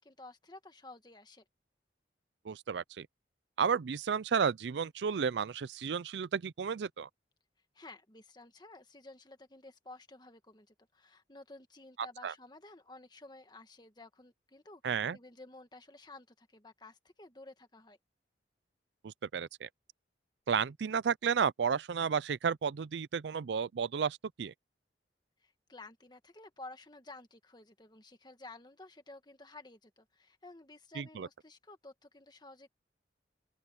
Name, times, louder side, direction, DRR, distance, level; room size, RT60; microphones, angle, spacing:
voice 1, 0.0-1.4 7.7-18.0 25.4-32.7, left 2 dB, 25° left, 1.7 m, -53 dB
voice 2, 2.4-3.1 3.6-7.1 12.2-12.3 14.8-15.2 19.0-19.7 20.5-24.5 31.0-31.3, right 6 dB, 75° right, 0.4 m, -32 dB
open air
head